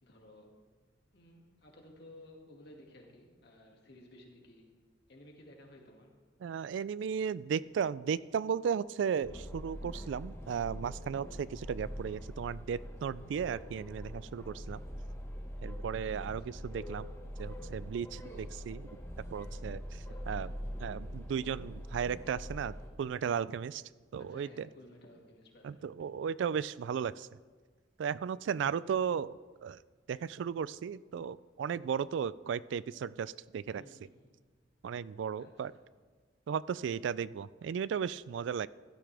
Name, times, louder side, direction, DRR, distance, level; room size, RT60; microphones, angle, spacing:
voice 1, 0.0-0.5 1.1-4.7 5.1-6.1 12.5-12.7 14.9-15.3 16.2-16.6 20.1-20.6 24.2-25.9 28.7-28.9 33.7-34.3 35.4-35.8 37.6-37.8, left 1 dB, 60° left, 0 dB, 2.2 m, -56 dB
voice 2, 6.4-14.8 15.6-17.1 17.4-18.9 19.3-20.5 20.8-23.8 24.1-24.7 25.6-27.3 28.0-29.8 30.1-33.8 34.8-35.7 36.5-38.7, right 7 dB, 70° right, 19 dB, 0.3 m, -35 dB
sound 1, 9.2-22.9, equal, 15° left, 1.3 m, -43 dB
15.5 x 12.5 x 3.4 m, 1.4 s
head